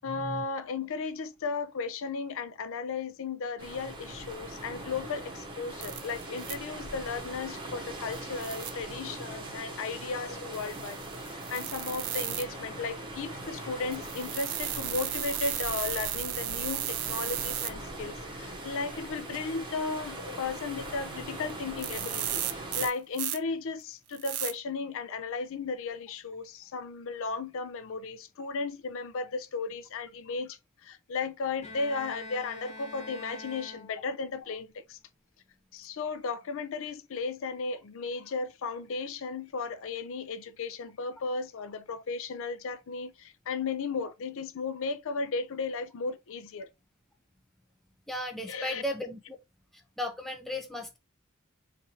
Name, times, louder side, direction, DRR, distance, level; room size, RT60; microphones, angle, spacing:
voice 1, 0.0-35.0 35.7-46.7 48.5-48.8, left 4 dB, 65° left, 0.5 m, -35 dB
sound 1, 3.6-22.9, right 1 dB, 20° right, 0.8 m, -41 dB
sound 2, 5.8-6.5 8.1-8.7 10.5-12.4 13.9-17.7 21.5-21.6 21.8-23.4 24.1-24.5, right 12 dB, 75° right, 0.5 m, -35 dB
Bowed string instrument, 31.6-34.3, left 2 dB, 30° left, 1.1 m, -45 dB
voice 2, 48.1-49.2 50.0-51.0, left 1 dB, ahead, 0.4 m, -35 dB
4.1 x 2.6 x 2.8 m
head